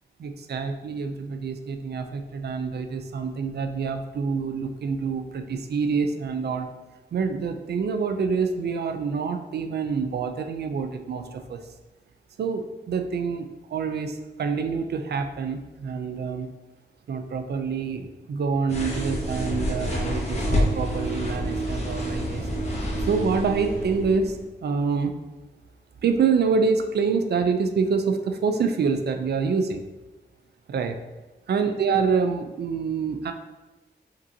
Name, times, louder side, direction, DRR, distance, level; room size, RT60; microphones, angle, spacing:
voice 1, 0.2-6.7 7.1-11.6 12.4-16.5 17.1-22.4 23.1-25.2 26.0-29.8 30.7-31.0 31.5-33.3, right 5 dB, 65° right, 7 dB, 0.4 m, -26 dB
sound 1, 18.7-24.4, equal, 40° left, 0.8 m, -28 dB
5.1 x 2.7 x 2.7 m, 1.1 s
wide cardioid pair, 145°, 18 cm